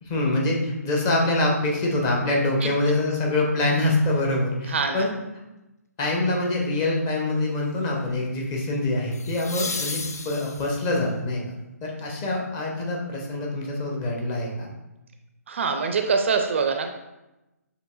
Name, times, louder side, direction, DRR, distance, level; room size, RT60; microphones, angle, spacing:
voice 1, 0.0-5.1 6.0-11.5 11.8-14.7, left 2 dB, 25° left, -1 dB, 0.9 m, -25 dB
voice 2, 4.7-5.1 15.5-16.9, right 5 dB, 45° right, 6 dB, 0.4 m, -24 dB
sound 1, 6.1-6.4 9.1-11.0 13.9-14.0, left 4 dB, 70° left, 0.4 m, -34 dB
6.7 x 3.0 x 2.4 m, 0.98 s
figure-of-eight pair, 140°, 9 cm